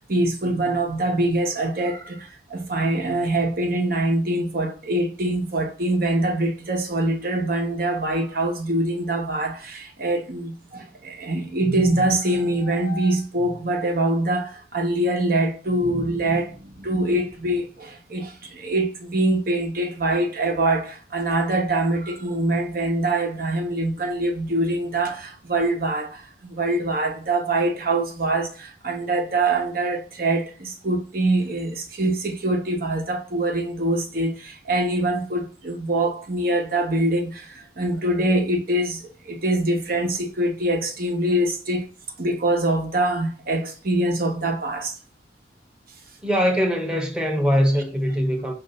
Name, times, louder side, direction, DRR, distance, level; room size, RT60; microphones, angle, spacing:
voice 1, 0.0-41.9 42.2-45.0, right 1 dB, 55° right, 0.9 m, -24 dB
voice 2, 46.2-48.5, equal, 5° right, 0.8 m, -22 dB
5.3 x 2.6 x 3.8 m
head